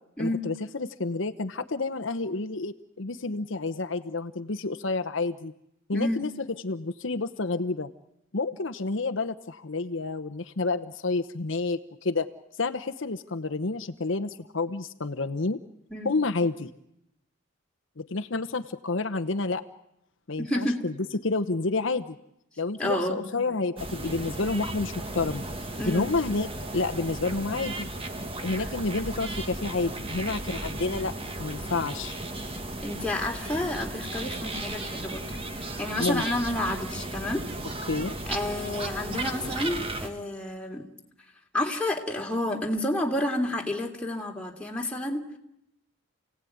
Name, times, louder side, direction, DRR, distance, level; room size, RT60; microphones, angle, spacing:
voice 1, 0.2-5.5 5.9-6.3 6.6-7.9 8.3-12.3 12.6-15.6 16.0-16.7 18.0-19.6 20.3-20.9 21.2-22.2 22.6-25.4 25.8-26.5 26.7-27.9 28.4-31.1 31.4-32.2 36.0-36.2 37.9-38.1, left 3 dB, 65° left, 8 dB, 0.9 m, -29 dB
voice 2, 20.4-20.8 22.8-23.2 25.8-26.1 28.6-28.7 32.8-37.4 38.3-40.8 41.5-45.2, left 1 dB, 5° left, 0 dB, 2.8 m, -30 dB
sound 1, 23.8-40.1, right 2 dB, 25° right, 1.6 m, -35 dB
29.5 x 17.5 x 9.4 m, 0.83 s
head